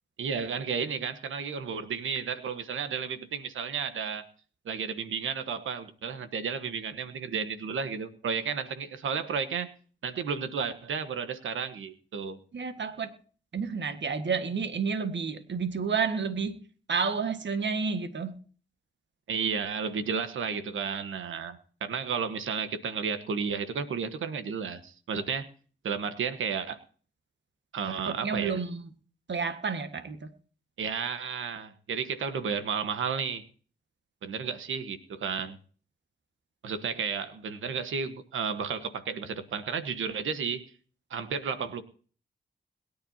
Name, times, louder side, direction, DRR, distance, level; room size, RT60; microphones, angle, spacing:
voice 1, 0.2-4.2 4.6-9.7 10.0-12.4 19.3-25.5 25.8-26.8 27.7-28.6 30.8-33.4 34.2-35.6 36.6-40.7 41.1-41.8, right 6 dB, 85° right, 10 dB, 1.3 m, -32 dB
voice 2, 12.5-13.1 13.5-16.6 16.9-18.3 27.8-28.9 29.3-30.3, right 5 dB, 65° right, 9 dB, 1.7 m, -30 dB
22.0 x 10.0 x 2.8 m, 0.41 s
supercardioid pair, 40°, 20 cm